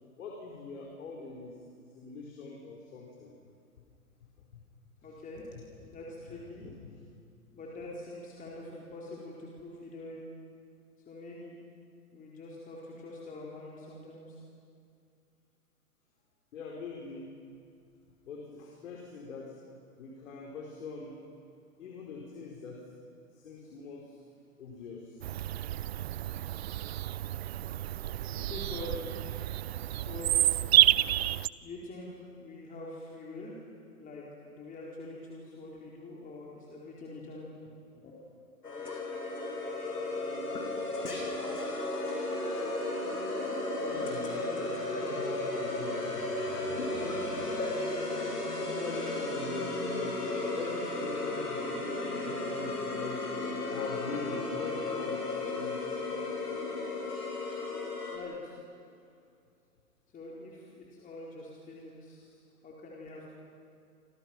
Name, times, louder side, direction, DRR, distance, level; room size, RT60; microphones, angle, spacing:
voice 1, 0.2-1.6 1.9-3.4 4.5-4.6 5.5-5.6 6.6-6.9 16.5-17.3 18.2-19.6 20.0-21.2 21.8-22.8 23.3-24.2 24.6-25.2 43.8-46.2 46.8-47.5 48.6-51.8 52.2-53.3 53.7-56.0, left 4 dB, 55° left, -1 dB, 4.7 m, -42 dB
voice 2, 5.0-5.5 5.9-6.7 7.5-10.2 11.1-11.6 12.1-14.4 28.4-29.2 29.9-30.4 30.9-31.1 31.6-32.1 32.4-33.6 34.0-38.4 58.1-58.8 60.1-62.4 62.6-63.3, left 2 dB, 20° left, -4 dB, 4.4 m, -45 dB
Bird vocalization bird call bird song, 25.2-31.5, right 13 dB, 45° right, 0.6 m, -29 dB
sound 1, 38.6-58.2, left 2 dB, 85° left, 7.8 m, -34 dB
29.5 x 27.0 x 6.1 m, 2.3 s
hypercardioid pair, 120°, 45 cm